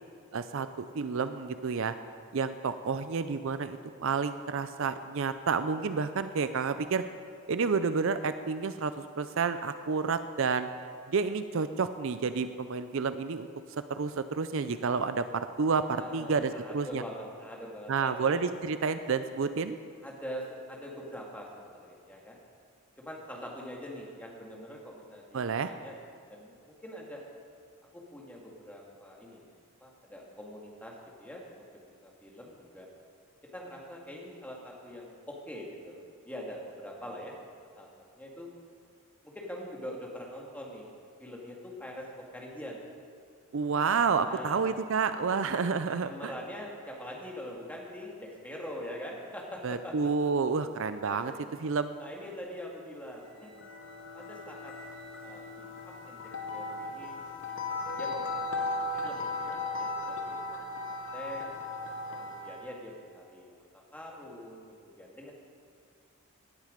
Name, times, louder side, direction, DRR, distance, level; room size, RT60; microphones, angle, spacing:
voice 1, 0.3-1.9 2.3-7.0 7.5-10.7 11.1-13.5 13.9-17.0 17.9-19.8 25.3-25.7 43.5-46.3 49.6-51.3 51.6-51.9, right 5 dB, 60° right, 11 dB, 0.5 m, -30 dB
voice 2, 16.0-18.4 20.0-22.4 23.0-26.0 26.3-27.2 27.9-29.5 29.8-30.9 31.2-31.5 31.9-32.9 33.5-37.4 37.8-37.9 38.2-38.5 39.2-40.9 41.2-42.8 44.2-45.0 46.0-50.1 51.2-51.5 52.0-53.5 54.1-54.7 55.2-56.2 56.5-57.3 57.5-57.7 58.0-60.6 61.1-61.6 62.1-63.5 63.9-65.3, equal, 5° left, -2 dB, 2.0 m, -44 dB
sound 1, 53.3-62.7, left 2 dB, 55° left, 1.3 m, -37 dB
17.0 x 10.5 x 5.1 m, 2.2 s
head